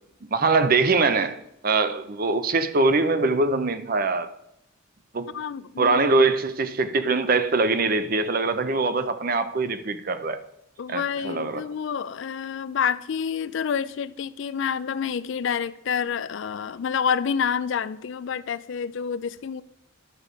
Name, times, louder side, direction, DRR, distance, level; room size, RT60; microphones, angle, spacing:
voice 1, 0.3-1.4 1.6-4.3 5.1-5.3 5.8-10.4 10.9-11.6, right 3 dB, 45° right, 0.6 m, -23 dB
voice 2, 5.3-6.1 10.8-19.6, left 7 dB, 60° left, 0.4 m, -28 dB
11.0 x 6.6 x 5.0 m
head